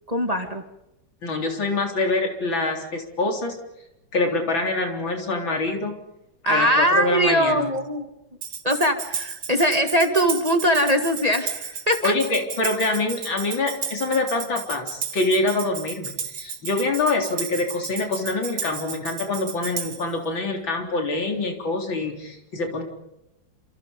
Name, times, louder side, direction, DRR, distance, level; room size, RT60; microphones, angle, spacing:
voice 1, 0.1-0.6 6.4-8.1 8.6-12.1, equal, 20° right, 4 dB, 2.1 m, -21 dB
voice 2, 1.2-3.6 4.1-5.9 6.5-7.7 12.0-22.8, left 3 dB, 85° left, 2 dB, 4.5 m, -25 dB
Tambourine, 8.4-20.1, right 7 dB, 85° right, 2.6 m, -33 dB
28.5 x 27.0 x 5.3 m, 0.88 s
omnidirectional pair, 2.1 m